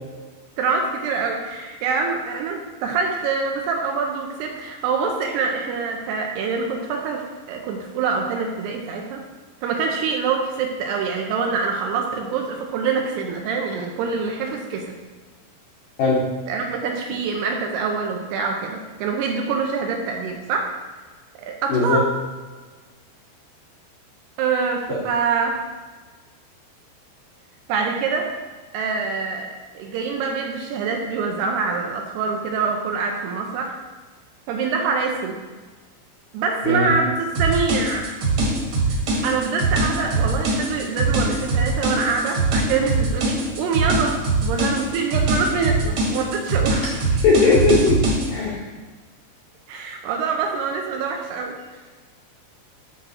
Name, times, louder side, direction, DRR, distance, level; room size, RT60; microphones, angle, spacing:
voice 1, 0.6-9.2 9.6-15.0 16.5-20.7 21.4-22.1 24.4-25.6 27.7-28.3 28.7-29.5 29.7-33.8 34.5-35.4 36.3-38.2 38.9-47.1 49.7-51.6, right 5 dB, 80° right, 2 dB, 2.6 m, -25 dB
voice 2, 21.7-22.0 24.9-25.0 36.7-36.9 47.2-48.0 48.3-48.6, left 3 dB, 75° left, -5 dB, 2.0 m, -18 dB
sound 1, 37.3-48.3, right 3 dB, 55° right, 2.0 m, -22 dB
10.0 x 3.8 x 6.2 m, 1.3 s
omnidirectional pair, 5.2 m